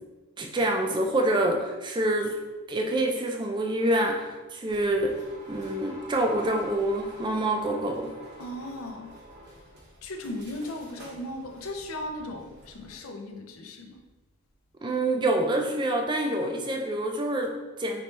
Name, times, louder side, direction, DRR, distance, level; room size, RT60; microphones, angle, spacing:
voice 1, 0.4-2.4 2.7-5.2 5.5-8.1 14.8-18.0, right 1 dB, 20° right, 2 dB, 0.4 m, -26 dB
sound 1, 4.7-13.0, right 1 dB, 50° right, 0.9 m, -48 dB
voice 2, 8.4-9.2 10.0-14.1, left 1 dB, 70° left, 4 dB, 0.5 m, -37 dB
4.4 x 3.2 x 3.1 m, 1.2 s
head